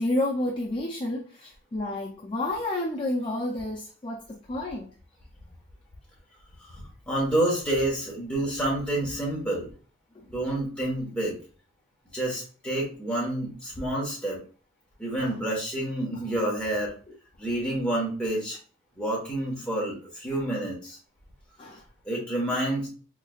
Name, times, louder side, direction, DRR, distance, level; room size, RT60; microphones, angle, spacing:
voice 1, 0.0-4.9 15.2-15.4 21.6-21.8, left 1 dB, 25° left, 0.4 m, -30 dB
voice 2, 6.7-9.7 10.2-11.4 12.1-14.4 15.0-16.9 17.4-18.6 19.0-21.0 22.0-22.9, right 1 dB, 5° left, 1.1 m, -28 dB
3.8 x 3.2 x 2.3 m
head